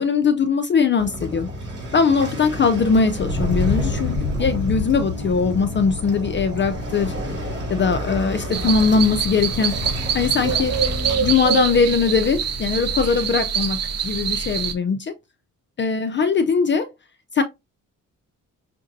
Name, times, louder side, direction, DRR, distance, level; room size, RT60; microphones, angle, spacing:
voice 1, 0.0-1.5 1.9-7.1 7.7-9.7 10.1-10.8 11.2-13.8 14.0-15.1 15.8-16.9 17.3-17.4, left 5 dB, 35° left, 0.5 m, -20 dB
Waves surf, 1.0-11.3, right 1 dB, 35° right, 2.8 m, -32 dB
Thunder, 2.5-13.1, left 3 dB, 10° left, 1.1 m, -31 dB
sound 1, 8.5-14.7, right 7 dB, 55° right, 0.6 m, -25 dB
5.8 x 2.6 x 2.6 m
cardioid pair, 115°, 32 cm